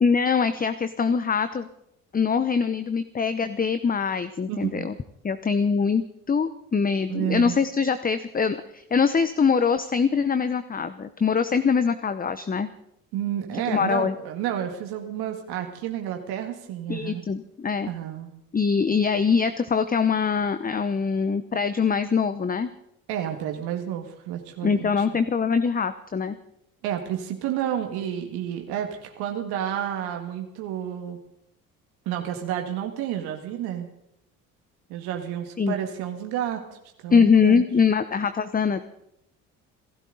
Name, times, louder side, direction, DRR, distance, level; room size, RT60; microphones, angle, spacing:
voice 1, 0.0-1.7 2.1-4.9 5.2-6.0 6.3-12.7 13.7-14.1 16.9-17.9 18.5-22.7 24.6-26.4 35.6-35.7 37.1-38.8, left 5 dB, 20° left, 11 dB, 0.9 m, -23 dB
voice 2, 4.5-4.9 7.1-7.5 13.1-17.2 17.9-18.3 23.1-25.2 26.8-31.2 32.1-33.9 34.9-36.6 37.0-37.6, right 10 dB, 70° right, 4 dB, 1.9 m, -30 dB
26.5 x 13.0 x 4.0 m, 0.79 s
hypercardioid pair, 55°, 40 cm